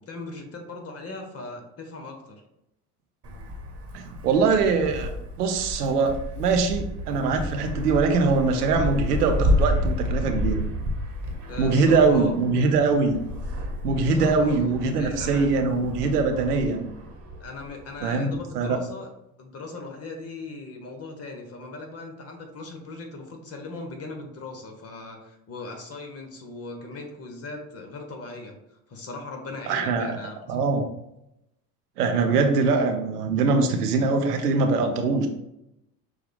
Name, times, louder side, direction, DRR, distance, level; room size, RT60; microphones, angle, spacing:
voice 1, 0.0-2.4 11.5-12.4 14.0-14.6 15.0-15.5 17.4-19.1 19.4-28.6 28.9-30.4, left 3 dB, 30° left, 3 dB, 1.2 m, -39 dB
Wind, 3.2-18.1, left 1 dB, 30° right, 1.3 m, -30 dB
voice 2, 3.9-5.1 5.4-10.6 11.6-13.2 13.8-16.9 18.0-18.8 29.7-30.9 32.0-35.3, right 4 dB, 85° right, 5 dB, 0.8 m, -22 dB
6.2 x 2.3 x 3.5 m, 0.83 s
hypercardioid pair, 75°, 45 cm